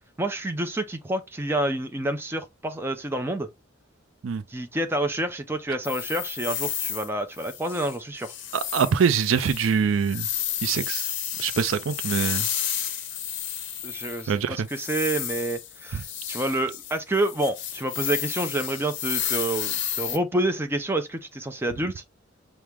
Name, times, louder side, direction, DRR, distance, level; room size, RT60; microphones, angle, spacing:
voice 1, 0.2-3.5 4.5-8.3 13.8-22.0, right 1 dB, 10° right, 0.5 m, -28 dB
sound 1, 5.8-7.1 7.4-8.0 8.2-14.4 14.7-20.2, left 10 dB, 65° left, 0.6 m, -32 dB
voice 2, 8.5-10.3 10.6-11.1 11.4-12.5 14.3-14.7, right 6 dB, 80° right, 0.4 m, -24 dB
6.0 x 2.1 x 3.4 m
head